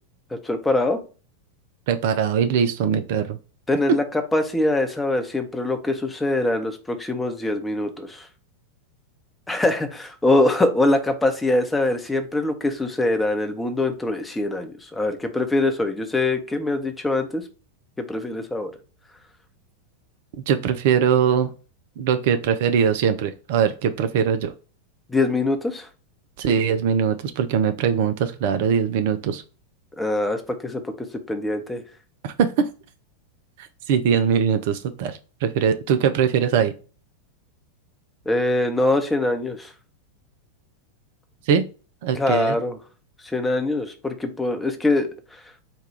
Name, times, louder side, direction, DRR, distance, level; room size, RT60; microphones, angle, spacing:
voice 1, 0.3-1.0 3.7-8.3 9.5-17.4 18.0-18.7 25.1-25.9 30.0-31.8 38.3-39.7 42.1-42.8 43.3-45.1, left 2 dB, 10° left, 0.8 m, -23 dB
voice 2, 1.9-3.4 20.5-21.5 22.0-24.5 26.4-29.4 32.2-32.7 33.6-36.7 41.5-41.6 42.0-42.6, right 7 dB, 50° right, 0.4 m, -21 dB
4.3 x 2.3 x 4.7 m
figure-of-eight pair, 90°, 0 cm